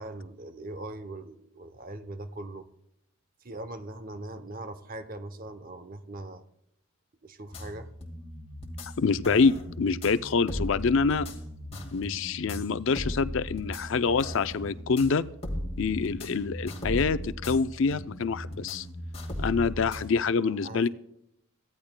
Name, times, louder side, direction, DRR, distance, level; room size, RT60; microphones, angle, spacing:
voice 1, 0.0-2.7 3.4-6.4 7.2-7.9 20.4-20.9, right 2 dB, 40° right, 10 dB, 0.7 m, -41 dB
sound 1, 7.5-20.0, equal, 30° left, 1.8 m, -37 dB
voice 2, 9.0-11.3 11.9-15.2 15.8-18.9 19.4-20.9, left 4 dB, 60° left, 14 dB, 0.4 m, -26 dB
22.5 x 15.5 x 2.2 m, 0.80 s
head